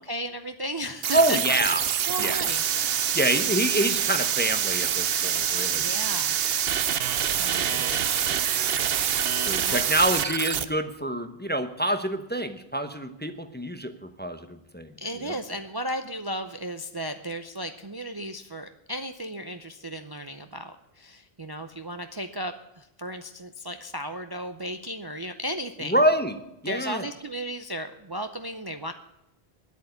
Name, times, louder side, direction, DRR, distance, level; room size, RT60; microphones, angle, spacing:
voice 1, 0.1-1.4 2.1-2.6 5.7-6.4 7.4-8.4 9.6-9.8 15.0-25.9 26.7-28.9, equal, 25° right, 8 dB, 0.6 m, -35 dB
sound 1, 1.0-10.6, right 9 dB, 70° right, 0.9 m, -26 dB
voice 2, 1.1-1.8 2.2-2.5 3.1-5.9 7.7-8.0 9.4-14.9 15.3-15.4 25.8-26.4 26.6-27.1, right 1 dB, 10° left, 8 dB, 0.8 m, -26 dB
10.5 x 8.3 x 9.6 m, 0.88 s
omnidirectional pair, 1.1 m